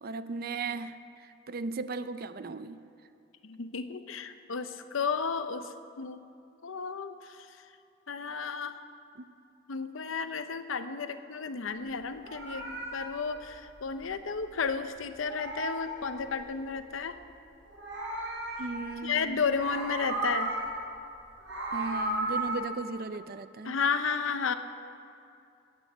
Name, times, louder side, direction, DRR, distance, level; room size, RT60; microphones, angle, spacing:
voice 1, 0.0-2.8 9.2-9.3 18.6-19.4 21.7-23.8, right 3 dB, 50° right, 12 dB, 0.5 m, -37 dB
voice 2, 3.4-6.2 6.6-7.5 8.1-8.8 9.7-17.2 19.0-20.6 23.6-24.5, left 5 dB, 85° left, 10 dB, 0.7 m, -33 dB
Meow, 12.0-14.7 15.0-16.7 17.5-19.1 19.4-20.9 21.2-22.6, right 2 dB, 85° right, 3.9 m, -35 dB
13.0 x 8.7 x 7.9 m, 2.6 s
head